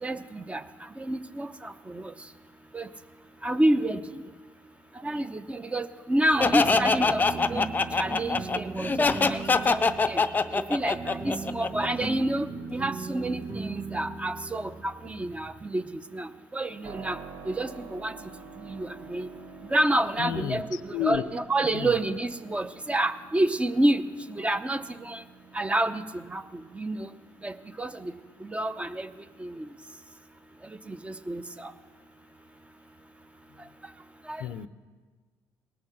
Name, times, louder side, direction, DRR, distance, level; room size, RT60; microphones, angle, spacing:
voice 1, 0.0-0.6 1.0-2.1 2.7-2.9 3.4-4.2 5.0-7.7 8.0-10.2 10.5-17.2 17.4-18.1 18.6-19.3 19.7-24.0 24.3-25.2 25.5-27.1 27.4-28.1 28.4-29.1 29.4-29.7 30.9-31.7 34.3-34.4, right 1 dB, 15° right, 11 dB, 0.7 m, -29 dB
Laughter, 6.4-12.1, left 4 dB, 25° left, 0.5 m, -24 dB
sound 1, 6.4-15.6, right 4 dB, 40° right, 2.1 m, -38 dB
Keyboard (musical), 16.8-29.6, right 5 dB, 60° right, 1.0 m, -49 dB
voice 2, 20.2-21.3 21.7-22.0 34.4-34.7, left 9 dB, 80° left, 14 dB, 0.5 m, -31 dB
18.5 x 6.4 x 6.0 m, 1.4 s
supercardioid pair, 80°, 7 cm